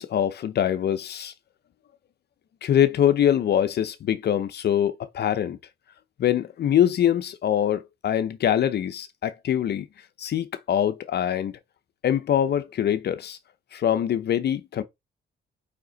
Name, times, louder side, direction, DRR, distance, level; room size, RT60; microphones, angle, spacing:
voice 1, 0.0-1.3 2.6-5.6 6.2-9.9 10.2-11.5 12.0-13.4 13.7-14.8, left 10 dB, 55° left, 0.6 m, -23 dB
5.0 x 4.7 x 4.0 m
cardioid pair, 90°, 20 cm